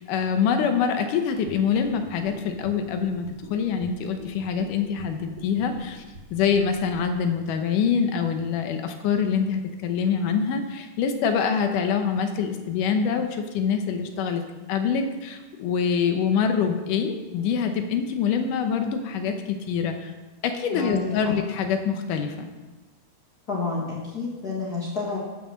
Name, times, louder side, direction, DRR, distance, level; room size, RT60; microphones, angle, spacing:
voice 1, 0.0-6.0 6.3-14.4 14.7-20.1 20.4-22.5, left 6 dB, 75° left, 6 dB, 2.1 m, -25 dB
sound 1, 1.3-7.2, right 2 dB, 30° right, 2.7 m, -44 dB
voice 2, 20.7-21.3 23.5-25.2, left 4 dB, 55° left, -4 dB, 1.0 m, -29 dB
12.0 x 6.0 x 6.4 m, 1.2 s
omnidirectional pair, 4.4 m